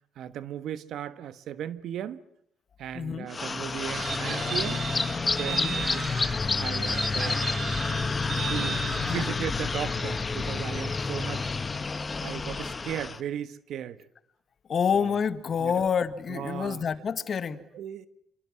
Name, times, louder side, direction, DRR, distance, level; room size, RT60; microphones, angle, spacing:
voice 1, 0.2-2.2 2.8-4.9 5.4-6.0 6.5-7.4 8.5-11.5 12.2-14.1 15.6-15.7 16.3-16.8 17.5-18.1, right 10 dB, 75° right, 1.4 m, -36 dB
voice 2, 2.9-3.3 5.5-5.8 9.0-9.3 14.7-17.6, left 7 dB, 50° left, 1.7 m, -28 dB
sound 1, 3.3-13.2, left 4 dB, 30° left, 1.4 m, -29 dB
Chicken rooster, 3.9-6.4 6.8-9.3, right 7 dB, 55° right, 3.4 m, -35 dB
27.0 x 26.5 x 7.6 m
cardioid pair, 90°, 0 cm